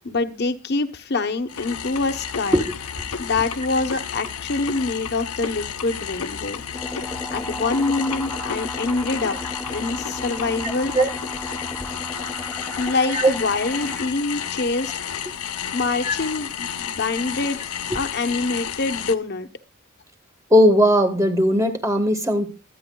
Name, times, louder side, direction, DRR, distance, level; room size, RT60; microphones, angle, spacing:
voice 1, 0.0-2.7 3.2-6.6 7.3-9.4 9.7-10.9 12.8-14.9 15.7-17.6 17.9-19.5, left 3 dB, 50° left, 7 dB, 0.9 m, -25 dB
sound 1, 1.5-19.1, left 8 dB, 85° left, 0.8 m, -32 dB
sound 2, 6.7-14.0, left 1 dB, 10° left, 0.8 m, -34 dB
voice 2, 20.5-22.5, equal, 15° right, 5 dB, 1.3 m, -17 dB
23.5 x 9.2 x 2.3 m, 0.29 s
head